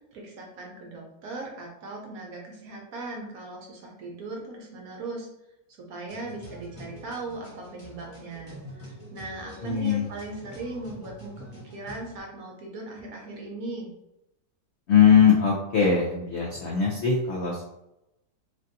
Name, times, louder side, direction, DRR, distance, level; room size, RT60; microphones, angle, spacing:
voice 1, 0.1-5.3 5.8-13.9, right 2 dB, 65° right, -1 dB, 1.1 m, -39 dB
sound 1, 6.1-12.2, equal, 20° left, 0.9 m, -46 dB
voice 2, 9.6-10.1 14.9-17.6, left 7 dB, 75° left, -3 dB, 0.6 m, -21 dB
3.4 x 2.6 x 2.6 m, 0.86 s
omnidirectional pair, 1.8 m